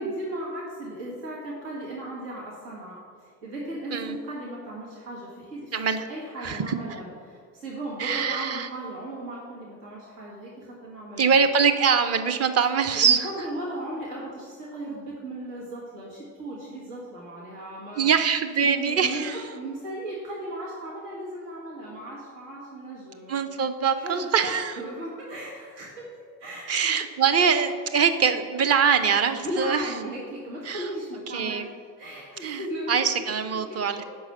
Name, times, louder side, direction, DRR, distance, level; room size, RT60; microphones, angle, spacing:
voice 1, 0.0-5.7 6.1-11.3 12.9-18.0 18.6-23.4 23.9-26.0 26.4-26.9 29.3-31.7 32.0-33.1 33.5-34.0, right 1 dB, 80° right, -6 dB, 1.8 m, -36 dB
voice 2, 5.7-6.1 6.4-6.7 8.0-8.7 11.2-13.3 18.0-19.4 23.3-24.7 26.7-29.9 30.6-30.8 31.3-31.7 32.4-34.0, right 6 dB, 30° right, 8 dB, 0.7 m, -23 dB
6.1 x 4.7 x 6.5 m, 2.1 s
hypercardioid pair, 70°, 48 cm